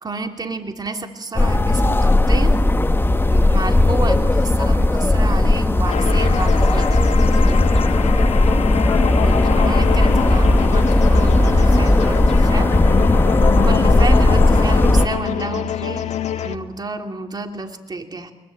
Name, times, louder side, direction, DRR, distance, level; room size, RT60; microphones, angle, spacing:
voice 1, 0.0-2.6 3.3-6.9 9.2-12.7 13.6-16.1 16.4-18.3, right 3 dB, 35° right, 5 dB, 2.9 m, -30 dB
sound 1, 1.3-15.1, left 2 dB, 20° left, 1.0 m, -16 dB
sound 2, 5.9-16.6, left 9 dB, 75° left, 1.6 m, -25 dB
25.0 x 22.0 x 8.7 m, 1.1 s
cardioid pair, 70°, 12 cm